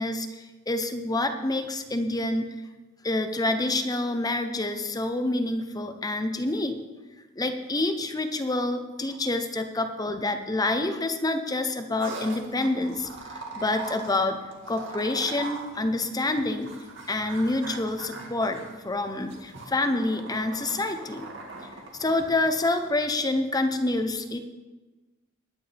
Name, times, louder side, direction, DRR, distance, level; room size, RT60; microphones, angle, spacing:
voice 1, 0.0-2.5 3.0-6.8 7.4-14.4 14.7-16.7 17.1-21.3 22.0-24.4, left 2 dB, 20° left, 7 dB, 0.8 m, -27 dB
sound 1, 12.0-22.9, right 3 dB, 65° right, 2.2 m, -42 dB
20.0 x 9.8 x 3.5 m, 1.2 s
head